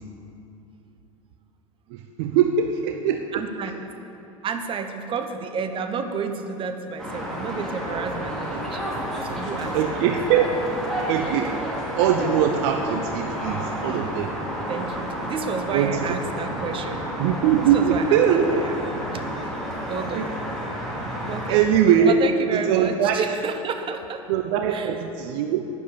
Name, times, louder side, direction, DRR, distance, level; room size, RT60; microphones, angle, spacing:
voice 1, 1.9-3.2 9.7-10.6 11.1-11.5 12.0-14.3 15.7-16.2 17.2-18.5 20.2-20.3 21.5-22.2 22.5-23.2 24.3-25.7, right 8 dB, 50° right, 5 dB, 0.8 m, -21 dB
voice 2, 3.3-3.7 4.4-8.8 9.2-10.0 13.9-14.0 14.7-17.1 17.7-18.8 19.1-19.3 19.9-20.4 21.2-21.6 22.0-24.2 24.7-25.0, right 5 dB, 30° right, 7 dB, 1.1 m, -31 dB
sound 1, 7.0-21.5, equal, 5° left, 3.7 m, -30 dB
11.5 x 9.9 x 7.0 m, 2.8 s
figure-of-eight pair, 80°, 18 cm